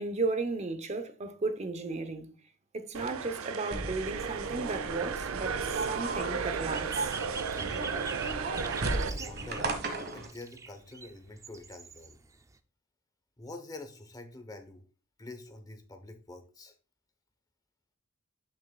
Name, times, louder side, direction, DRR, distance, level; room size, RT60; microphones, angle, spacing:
voice 1, 0.0-2.3 2.7-7.1 7.5-7.6, right 3 dB, 35° right, 0.7 m, -34 dB
sound 1, 2.9-9.1, right 6 dB, 90° right, 0.5 m, -35 dB
sound 2, 3.7-10.3, right 2 dB, 50° right, 1.3 m, -36 dB
sound 3, 4.2-12.6, right 4 dB, 15° right, 0.3 m, -45 dB
voice 2, 9.0-9.7 10.1-12.2 13.4-14.8 15.2-16.7, left 2 dB, 20° left, 0.8 m, -46 dB
8.3 x 6.4 x 2.3 m
head